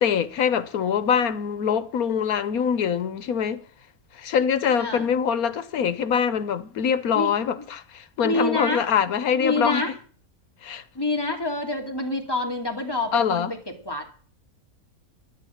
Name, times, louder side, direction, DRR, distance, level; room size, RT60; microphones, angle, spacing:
voice 1, 0.0-3.6 4.2-9.9 10.6-10.8 13.1-13.5, left 7 dB, 90° left, 1.5 m, -24 dB
voice 2, 7.1-7.7 8.2-8.9 9.4-9.9 10.9-14.2, left 2 dB, 15° left, 2.8 m, -27 dB
13.0 x 10.0 x 7.3 m
omnidirectional pair, 1.5 m